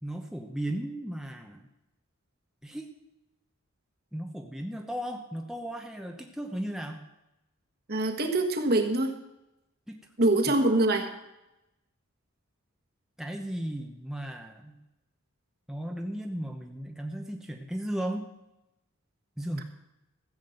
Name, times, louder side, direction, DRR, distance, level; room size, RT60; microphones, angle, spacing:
voice 1, 0.0-1.7 2.6-2.9 4.1-7.0 9.9-10.0 10.3-10.4 13.2-14.8 15.7-18.2 19.4-19.6, right 1 dB, ahead, 2 dB, 0.9 m, -35 dB
voice 2, 7.9-9.1 10.2-11.1, right 2 dB, 45° right, 4 dB, 1.5 m, -24 dB
14.5 x 7.3 x 7.8 m, 0.92 s
head